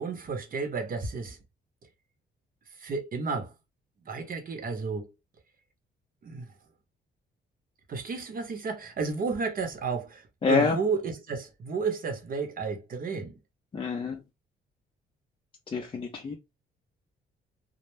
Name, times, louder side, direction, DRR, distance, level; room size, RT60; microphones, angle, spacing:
voice 1, 0.0-1.4 2.8-3.5 4.0-5.1 6.2-6.5 7.9-13.4, right 4 dB, 45° right, 0.8 m, -32 dB
voice 2, 10.4-10.8 13.7-14.2 15.7-16.3, left 4 dB, 25° left, 0.4 m, -26 dB
2.1 x 2.0 x 3.1 m
cardioid pair, 90°, 20 cm